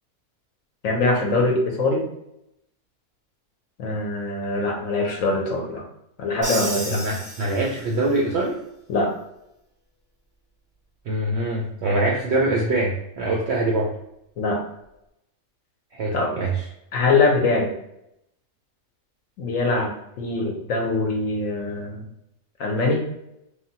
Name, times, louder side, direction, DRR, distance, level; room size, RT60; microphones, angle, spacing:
voice 1, 0.8-2.1 3.8-5.8 6.2-7.0 8.9-9.1 14.4-14.6 16.1-16.3 16.9-17.7 19.4-19.9 20.2-22.0 22.6-23.0, left 3 dB, 70° left, 1 dB, 0.9 m, -23 dB
Crash cymbal, 6.4-8.1, right 1 dB, 25° right, 0.7 m, -32 dB
voice 2, 6.9-8.6 11.1-13.9 15.9-16.7, right 2 dB, 70° right, -3 dB, 0.6 m, -24 dB
3.2 x 2.1 x 2.7 m, 0.82 s
omnidirectional pair, 1.6 m